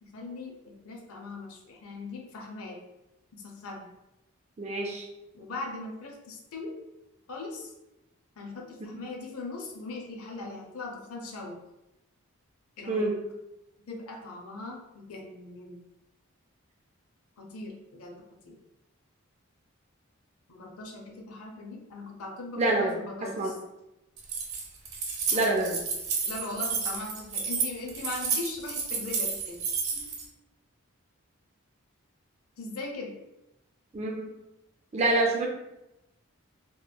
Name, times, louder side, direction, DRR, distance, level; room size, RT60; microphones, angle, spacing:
voice 1, 0.0-2.8 3.3-3.9 5.3-6.7 7.3-7.7 8.4-11.6 12.8-13.1 13.9-15.8 17.4-18.1 18.4-18.5 20.5-23.5 25.3-25.6 26.2-29.6 29.9-30.1 32.6-33.2, left 3 dB, 80° left, 1 dB, 0.5 m, -40 dB
voice 2, 4.6-5.1 12.9-13.1 22.6-23.0 23.4-23.5 25.3-25.8 33.9-34.3 34.9-35.5, right 2 dB, 30° right, 0 dB, 0.4 m, -26 dB
Keys jangling, 24.2-30.2, right 5 dB, 70° right, 0.8 m, -31 dB
2.9 x 2.5 x 2.2 m, 0.92 s
head